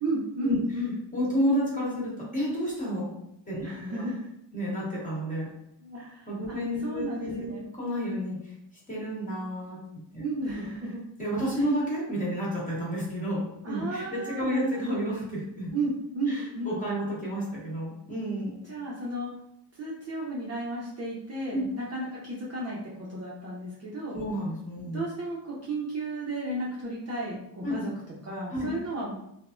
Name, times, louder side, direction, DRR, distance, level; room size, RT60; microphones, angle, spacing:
voice 1, 0.0-0.9 3.6-4.3 5.8-6.6 6.8-7.6 10.2-11.0 13.6-15.0 15.7-16.8 18.7-19.3 19.8-24.2 24.8-27.9 28.2-29.1, right 2 dB, 35° right, -5 dB, 0.5 m, -33 dB
voice 2, 1.1-3.1 3.5-4.0 4.5-5.5 6.3-7.5 7.8-8.4 8.9-9.8 10.1-10.5 11.2-15.7 16.3-18.6 21.5-21.7 24.1-25.0 27.6-27.8 28.5-28.7, equal, 20° left, -6 dB, 1.1 m, -30 dB
3.2 x 2.0 x 2.4 m, 0.78 s
cardioid pair, 130°, 45 cm